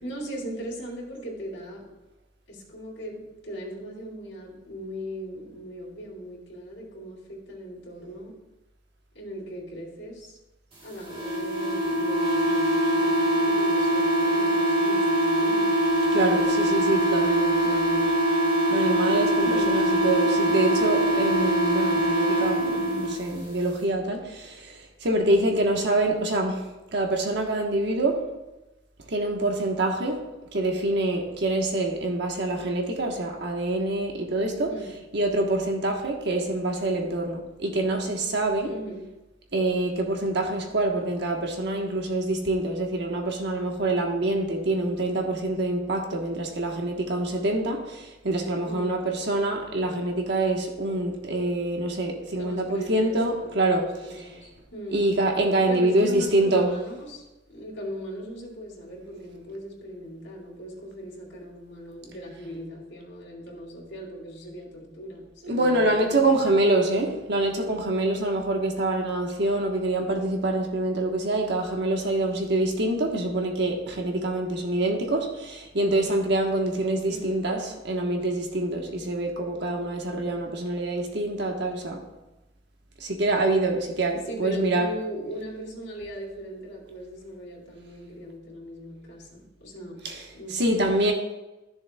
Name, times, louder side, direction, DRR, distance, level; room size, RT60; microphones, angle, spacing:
voice 1, 0.0-1.8 2.5-8.3 9.1-10.4 10.8-15.8 19.4-19.8 34.7-34.9 38.6-39.0 48.6-49.0 52.3-55.1 55.7-66.2 77.1-77.4 84.3-90.0 90.3-90.8, equal, 70° left, -2 dB, 3.2 m, -38 dB
sound 1, 11.1-23.1, right 1 dB, 30° right, 2.0 m, -23 dB
voice 2, 16.1-18.1 18.7-28.3 29.1-34.7 35.1-38.7 39.5-53.8 54.9-56.8 65.4-82.0 83.0-84.9 90.0-90.2 90.5-91.1, right 2 dB, 65° right, 2 dB, 1.2 m, -26 dB
14.0 x 6.9 x 2.3 m, 1.0 s
head